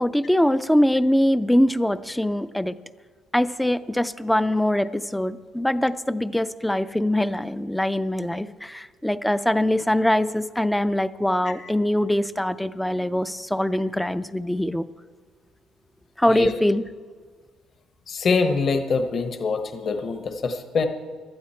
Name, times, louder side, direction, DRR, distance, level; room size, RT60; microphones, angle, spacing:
voice 1, 0.0-2.8 3.3-14.9 16.2-16.9, left 1 dB, 5° left, 14 dB, 0.4 m, -23 dB
voice 2, 18.1-20.9, left 4 dB, 35° left, 7 dB, 1.0 m, -24 dB
18.5 x 12.0 x 4.4 m, 1.5 s
cardioid pair, 145°, 0 cm